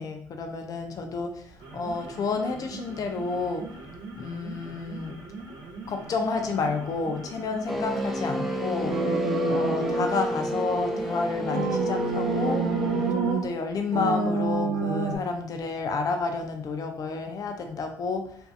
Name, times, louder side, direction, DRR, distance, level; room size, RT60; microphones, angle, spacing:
voice 1, 0.0-3.7 4.2-5.2 5.9-9.0 9.5-12.6 13.1-18.4, left 4 dB, 50° left, 5 dB, 0.5 m, -30 dB
sound 1, 1.5-13.5, right 3 dB, 55° right, 1.0 m, -42 dB
sound 2, 7.7-13.1, left 1 dB, ahead, 0.4 m, -30 dB
sound 3, 8.9-10.2 11.5-13.5 13.9-15.2, right 4 dB, 85° right, 0.4 m, -27 dB
2.6 x 2.2 x 2.6 m, 0.64 s
hypercardioid pair, 60°, 8 cm